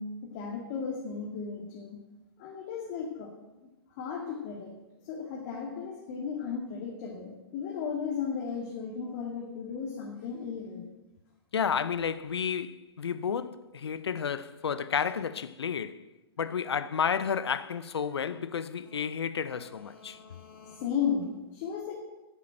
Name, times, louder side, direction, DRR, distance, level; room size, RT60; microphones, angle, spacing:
voice 1, 0.0-2.0 2.4-3.3 4.0-4.7 5.0-10.9 18.9-19.0 19.5-22.0, left 6 dB, 45° left, 2.4 m, -35 dB
voice 2, 11.5-16.0 16.4-20.2, left 7 dB, 80° left, 0.7 m, -31 dB
12.0 x 6.9 x 6.5 m
hypercardioid pair, 120°, 13 cm